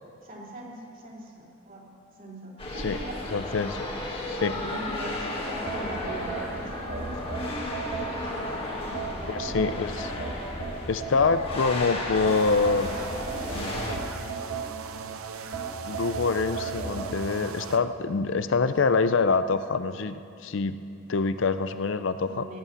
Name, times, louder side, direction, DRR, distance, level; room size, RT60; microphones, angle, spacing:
voice 1, 0.2-3.3 4.4-9.4 22.2-22.6, equal, 40° right, -3 dB, 3.0 m, -40 dB
sound 1, 2.6-14.0, left 1 dB, 25° left, 1.7 m, -34 dB
voice 2, 3.3-3.9 4.3-4.5 9.3-10.1 10.9-12.9 13.5-13.8 15.8-20.8 21.1-22.4, left 4 dB, 60° left, 12 dB, 0.5 m, -25 dB
sound 2, 5.7-8.4 8.9-11.7 12.2-15.0 15.5-17.2, right 4 dB, 65° right, 1.6 m, -35 dB
sound 3, 12.3-17.8, right 5 dB, 85° right, 0.8 m, -39 dB
18.5 x 8.4 x 8.2 m, 2.5 s
head